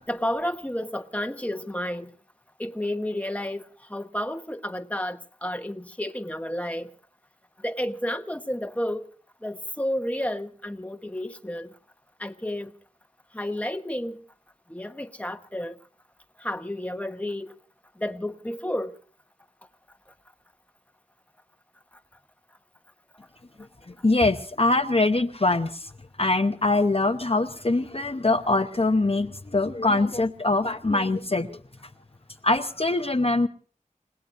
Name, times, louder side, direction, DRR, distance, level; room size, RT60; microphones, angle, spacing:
voice 1, 0.1-2.1 2.6-3.6 3.9-6.9 7.6-9.1 9.4-11.7 12.2-12.7 13.3-14.2 14.7-15.7 16.4-17.5 18.0-18.9, left 1 dB, 10° left, 1.2 m, -31 dB
voice 2, 24.0-25.9 26.2-31.6 32.4-33.5, left 2 dB, 45° left, 0.9 m, -23 dB
29.0 x 17.5 x 2.6 m
wide cardioid pair, 40°, 14 cm